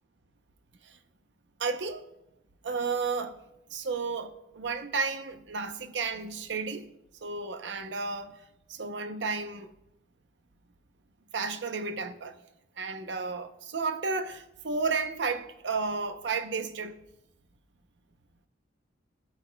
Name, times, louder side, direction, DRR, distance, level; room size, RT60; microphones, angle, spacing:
voice 1, 1.6-2.1 2.6-3.4 3.7-6.9 7.2-8.4 8.7-9.7 11.3-12.4 12.8-17.0, right 4 dB, 70° right, 0.7 m, -32 dB
15.0 x 8.4 x 2.2 m
head